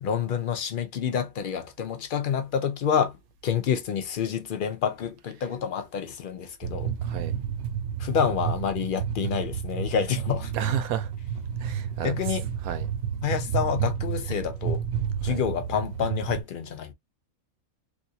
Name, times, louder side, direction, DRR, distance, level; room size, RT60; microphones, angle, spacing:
voice 1, 0.0-3.2 3.4-6.9 8.0-10.5 12.0-12.5 13.2-14.8 15.2-16.9, left 7 dB, 75° left, 0.4 m, -28 dB
sound 1, 6.6-16.4, right 8 dB, 60° right, 0.7 m, -31 dB
voice 2, 7.0-7.3 10.5-11.1 11.6-12.2 12.6-12.9 15.2-15.4, right 9 dB, 85° right, 1.1 m, -31 dB
3.3 x 2.5 x 2.7 m
omnidirectional pair, 1.5 m